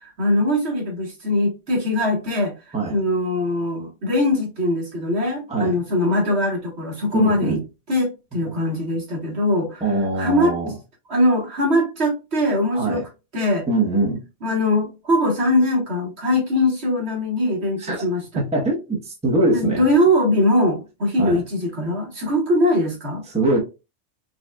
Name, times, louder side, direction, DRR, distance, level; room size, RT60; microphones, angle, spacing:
voice 1, 0.0-7.6 7.9-10.6 11.1-13.0 13.3-13.7 14.4-18.2 19.5-23.2, left 1 dB, 65° right, 1.7 m, -21 dB
voice 2, 7.1-7.6 9.8-10.7 12.7-13.0 13.7-14.2 17.8-18.0 18.3-19.8 21.2-21.4 23.3-23.6, right 2 dB, 5° right, 0.9 m, -22 dB
5.1 x 2.4 x 2.3 m
omnidirectional pair, 1.2 m